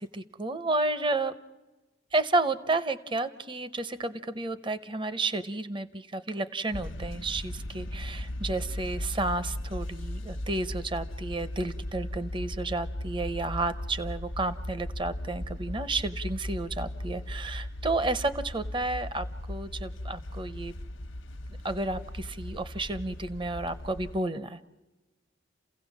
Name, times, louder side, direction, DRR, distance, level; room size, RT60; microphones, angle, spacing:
voice 1, 0.0-1.4 2.1-20.7 21.6-24.6, right 2 dB, 25° right, 14 dB, 0.8 m, -31 dB
sound 1, 6.7-24.2, left 1 dB, 80° left, 1.1 m, -37 dB
29.5 x 16.5 x 7.2 m, 1.2 s
head